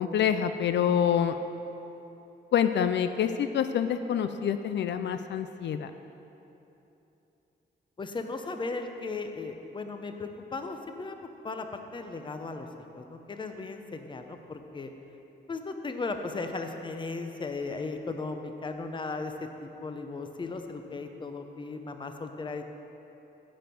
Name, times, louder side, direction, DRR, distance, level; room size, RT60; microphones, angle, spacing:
voice 1, 0.0-1.4 2.5-5.9, left 8 dB, 80° left, 9 dB, 0.4 m, -26 dB
voice 2, 8.0-11.2 11.4-12.7 12.9-14.9 15.5-19.3 19.6-22.6, left 3 dB, 25° left, 6 dB, 0.6 m, -36 dB
10.0 x 5.3 x 7.6 m, 3.0 s
wide cardioid pair, 145°, 18 cm